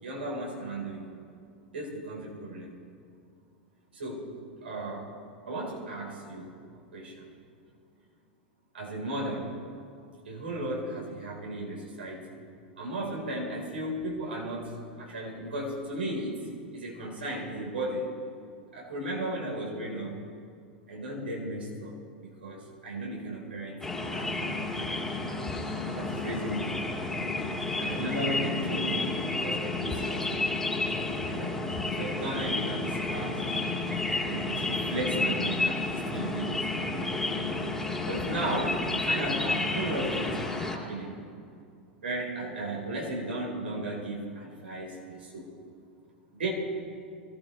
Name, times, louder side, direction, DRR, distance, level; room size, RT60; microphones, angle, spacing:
voice 1, 0.0-1.1 1.7-2.7 3.9-4.3 4.6-5.1 5.5-6.6 6.9-7.3 8.7-9.5 10.2-12.2 12.8-16.4 16.7-18.1 18.7-20.2 20.9-21.9 22.2-24.5 25.9-26.7 27.8-30.6 31.3-33.4 34.2-37.2 38.0-41.2 42.0-45.5 46.3-46.5, right 1 dB, 80° right, -3 dB, 4.2 m, -35 dB
sound 1, 23.8-40.8, left 2 dB, 5° left, 2.3 m, -31 dB
23.5 x 15.5 x 3.3 m, 2.3 s
hypercardioid pair, 95°, 6 cm